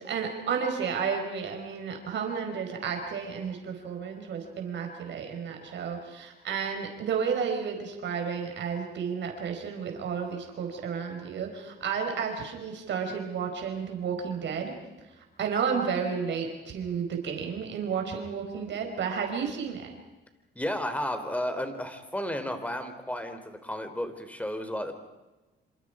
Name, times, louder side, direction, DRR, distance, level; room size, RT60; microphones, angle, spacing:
voice 1, 0.0-14.7 15.4-19.9, right 6 dB, 65° right, 3 dB, 5.1 m, -32 dB
voice 2, 20.5-25.0, left 1 dB, 5° left, 8 dB, 3.5 m, -33 dB
28.0 x 26.5 x 5.0 m, 1.1 s
cardioid pair, 90°, 20 cm